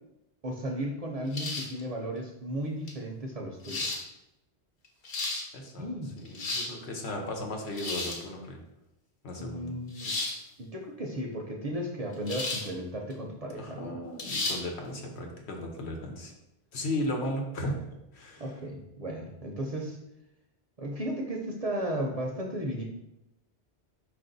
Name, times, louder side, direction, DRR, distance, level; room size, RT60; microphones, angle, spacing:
voice 1, 0.4-4.0 5.8-6.1 9.4-10.1 10.6-14.0 18.4-20.0 20.8-22.8, right 1 dB, 45° right, 0 dB, 0.5 m, -35 dB
sound 1, 1.3-1.8 2.9-3.0 3.6-4.0 4.8-5.4 6.2-6.7 7.7-8.2 9.9-10.4 12.3-12.7 13.1-13.2 14.2-14.6, left 2 dB, 65° left, 1.0 m, -33 dB
voice 2, 5.5-8.6 9.2-9.7 13.5-16.3 16.7-17.8 18.1-18.4, left 1 dB, 90° left, 1 dB, 1.1 m, -35 dB
4.9 x 2.5 x 3.8 m, 0.90 s
omnidirectional pair, 1.1 m